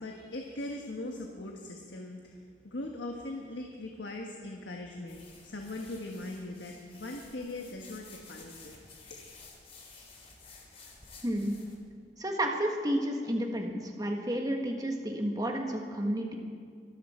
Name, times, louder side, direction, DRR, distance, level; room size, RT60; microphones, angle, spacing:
voice 1, 0.0-8.8 9.1-9.2, left 2 dB, 75° left, 1 dB, 1.4 m, -40 dB
sound 1, 5.1-11.7, left 4 dB, 35° left, 3.0 m, -53 dB
voice 2, 11.2-11.5 12.2-16.3, right 1 dB, 20° right, 2 dB, 1.6 m, -31 dB
24.5 x 12.5 x 4.4 m, 2.1 s
head